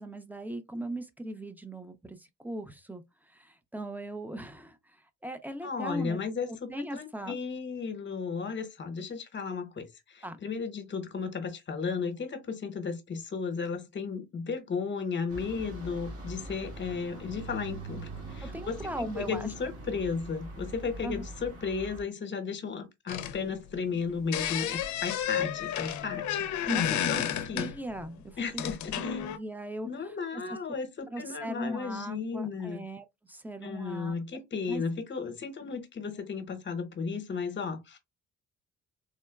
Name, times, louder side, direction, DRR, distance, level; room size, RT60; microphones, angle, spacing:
voice 1, 0.0-5.0 5.2-6.2 6.5-7.4 10.2-10.4 18.4-19.5 21.0-21.2 26.7-28.6 29.0-29.9 30.5-30.6 31.1-34.2 34.7-34.8, right 1 dB, 5° right, 0.4 m, -39 dB
voice 2, 5.6-27.7 28.4-29.2 29.8-32.8 33.6-38.0, left 5 dB, 40° left, 0.9 m, -35 dB
sound 1, 15.3-22.0, right 2 dB, 55° right, 1.6 m, -43 dB
sound 2, 23.1-24.0 24.3-28.1 28.6-29.4, left 10 dB, 70° left, 0.5 m, -31 dB
3.7 x 2.1 x 2.2 m
cardioid pair, 90°, 30 cm